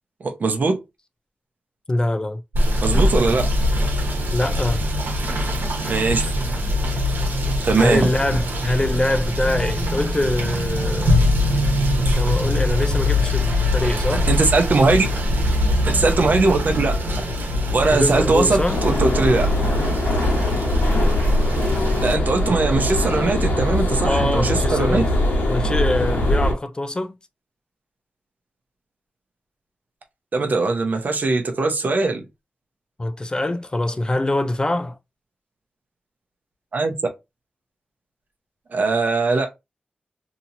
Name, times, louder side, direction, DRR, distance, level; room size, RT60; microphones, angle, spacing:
voice 1, 0.2-0.8 2.8-3.5 5.9-6.2 7.6-8.1 14.1-15.1 15.8-17.0 17.7-19.5 22.0-25.0 30.3-32.2 36.7-36.9 38.7-39.5, right 3 dB, 60° right, 0.7 m, -20 dB
voice 2, 1.9-2.4 4.3-4.8 7.8-11.2 12.2-14.3 17.9-18.9 24.0-25.1 25.5-27.2 33.0-35.0, left 1 dB, 25° left, 0.3 m, -24 dB
Rain / Motor vehicle (road), 2.5-22.1, left 1 dB, 85° right, 1.0 m, -22 dB
sound 1, 18.7-26.5, left 1 dB, 80° left, 1.1 m, -22 dB
2.9 x 2.8 x 2.6 m
cardioid pair, 65°, 3 cm